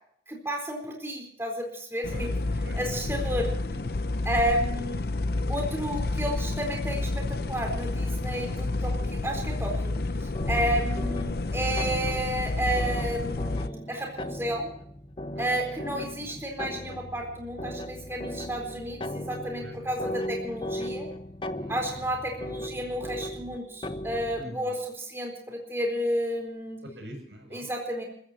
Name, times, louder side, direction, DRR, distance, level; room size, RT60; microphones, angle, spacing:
voice 1, 0.3-2.3 2.7-3.5 4.2-5.0 5.5-9.9 10.5-14.7 15.4-21.1 21.7-26.8 27.5-28.0, right 1 dB, 15° right, 1 dB, 4.0 m, -31 dB
sound 1, 2.0-13.7, left 2 dB, 60° left, 0.6 m, -30 dB
voice 2, 2.6-3.0 3.3-3.8 10.9-11.0 15.3-15.8 16.2-16.4 19.6-19.7 20.0-20.2 21.5-21.8 24.4-24.8 26.8-27.7, equal, 85° right, 4 dB, 6.9 m, -45 dB
sound 2, 10.3-24.5, left 1 dB, 30° left, 0.7 m, -38 dB
30.0 x 15.0 x 2.9 m, 0.67 s
head